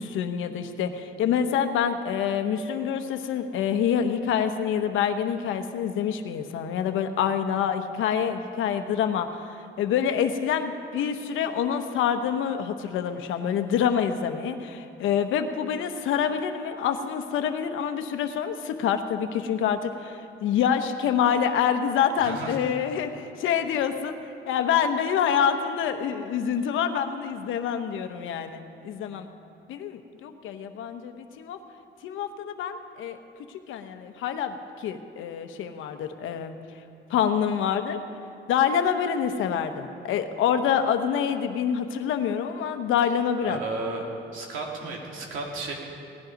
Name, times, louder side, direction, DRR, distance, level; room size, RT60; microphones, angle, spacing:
voice 1, 0.0-9.4 9.8-24.2 24.5-29.3 29.7-31.6 32.0-33.2 33.7-36.5 37.1-38.0 38.5-43.6, left 8 dB, 85° left, 8 dB, 1.0 m, -26 dB
voice 2, 22.2-22.5 43.4-44.1 44.3-45.7, right 3 dB, 90° right, 0 dB, 2.4 m, -33 dB
18.0 x 10.5 x 5.2 m, 2.8 s
cardioid pair, 90°, 20 cm